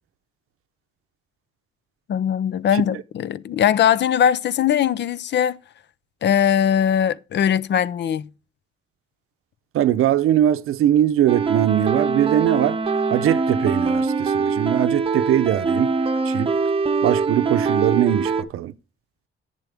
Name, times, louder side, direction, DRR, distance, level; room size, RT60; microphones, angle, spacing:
voice 1, 2.1-5.6 6.2-8.3, left 9 dB, 55° left, 0.5 m, -20 dB
voice 2, 9.7-12.8 13.1-15.9 16.3-16.5 17.0-18.7, right 11 dB, 85° right, 0.7 m, -21 dB
sound 1, 11.3-18.4, right 4 dB, 25° right, 0.8 m, -23 dB
10.5 x 9.1 x 3.4 m
cardioid pair, 125°, 21 cm